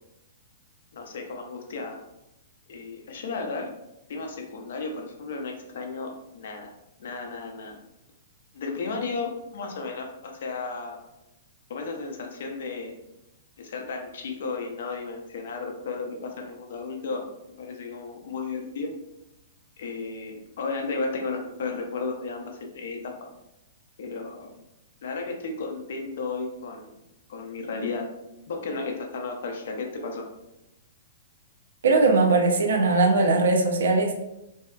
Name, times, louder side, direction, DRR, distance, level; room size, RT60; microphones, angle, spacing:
voice 1, 0.9-2.0 2.7-3.7 4.1-6.7 7.0-7.8 8.5-11.0 11.7-13.0 13.6-17.3 17.6-18.9 19.8-23.3 24.0-24.6 25.0-26.9 27.3-28.1 28.5-30.3, left 4 dB, 60° left, 3 dB, 0.4 m, -34 dB
voice 2, 31.8-34.2, right 3 dB, 85° right, 4 dB, 0.5 m, -20 dB
2.6 x 2.2 x 2.3 m, 0.90 s
hypercardioid pair, 175°, 0 cm